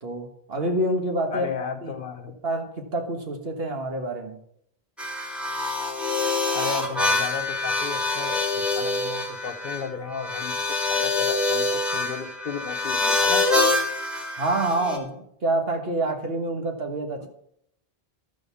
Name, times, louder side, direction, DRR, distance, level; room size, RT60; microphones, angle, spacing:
voice 1, 0.0-1.5 1.8-1.9 2.4-4.4 14.4-17.3, right 1 dB, 75° right, 4 dB, 1.7 m, -27 dB
voice 2, 1.3-2.3 6.5-10.5 10.9-13.4 17.2-17.3, left 5 dB, 60° left, 8 dB, 1.1 m, -34 dB
sound 1, 5.0-15.0, left 3 dB, ahead, 1.7 m, -25 dB
12.0 x 5.2 x 6.9 m, 0.73 s
omnidirectional pair, 1.0 m